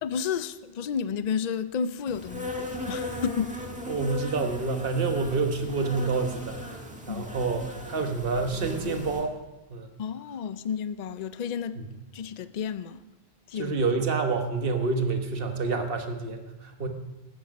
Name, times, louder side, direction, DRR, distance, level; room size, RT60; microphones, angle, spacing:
voice 1, 0.0-3.5 7.1-7.3 10.0-11.8 12.1-13.0 13.5-13.7, left 7 dB, 50° left, 0.6 m, -31 dB
Insect, 2.1-9.3, left 1 dB, 5° right, 1.7 m, -37 dB
voice 2, 3.9-9.4 9.7-9.9 11.7-11.9 13.5-16.9, right 4 dB, 60° right, 1.4 m, -28 dB
15.0 x 12.5 x 5.3 m
omnidirectional pair, 1.1 m